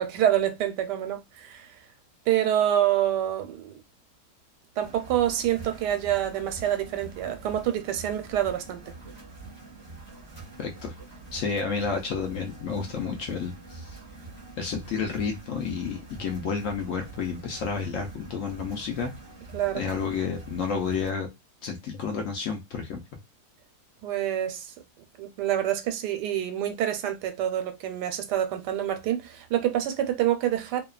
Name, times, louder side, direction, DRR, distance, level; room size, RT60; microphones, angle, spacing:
voice 1, 0.0-1.7 2.3-3.8 4.8-8.9 19.5-19.8 24.0-24.7 25.2-30.8, right 11 dB, 90° right, 1.2 m, -27 dB
sound 1, 4.8-21.1, right 3 dB, 20° left, 1.0 m, -45 dB
voice 2, 10.6-10.9 11.3-14.0 14.6-19.1 19.7-21.3 21.6-23.0, left 5 dB, 65° left, 0.8 m, -30 dB
2.8 x 2.3 x 2.3 m
omnidirectional pair, 1.8 m